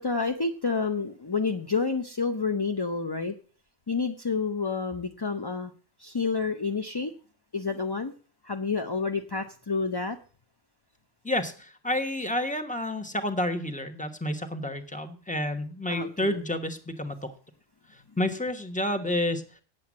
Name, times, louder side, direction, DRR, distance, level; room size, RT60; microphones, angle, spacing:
voice 1, 0.0-3.3 3.9-5.7 6.0-7.1 7.5-8.1 8.4-10.2 15.9-16.4, left 4 dB, 30° left, 5 dB, 0.5 m, -29 dB
voice 2, 11.2-17.3 17.9-19.4, left 1 dB, 5° left, 7 dB, 1.1 m, -30 dB
9.2 x 7.8 x 7.3 m, 0.39 s
omnidirectional pair, 1.3 m